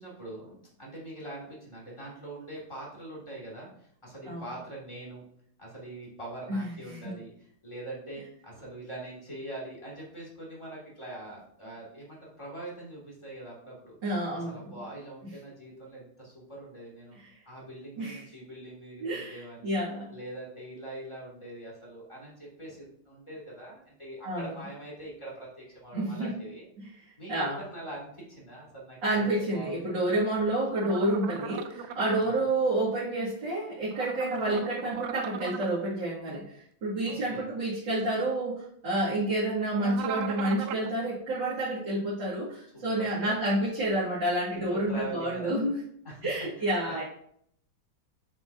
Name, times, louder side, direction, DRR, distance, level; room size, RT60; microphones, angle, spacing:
voice 1, 0.0-5.2 5.6-14.0 14.3-17.2 17.5-19.8 20.1-26.7 27.2-30.1 32.2-32.4 37.1-37.5 38.9-39.2 42.7-43.3 44.5-45.6 46.0-46.3 46.6-46.7, right 1 dB, 15° left, -6 dB, 2.5 m, -43 dB
voice 2, 6.5-7.1 14.0-14.7 18.0-18.2 19.0-20.1 24.2-24.5 25.9-26.3 26.8-26.9 27.3-27.6 29.0-45.8 46.2-47.0, right 1 dB, 60° right, -10 dB, 3.0 m, -29 dB
sound 1, 30.7-32.2 33.9-35.7 39.8-40.9, right 8 dB, 90° right, 0.8 m, -38 dB
7.3 x 6.1 x 2.7 m, 0.68 s
omnidirectional pair, 2.2 m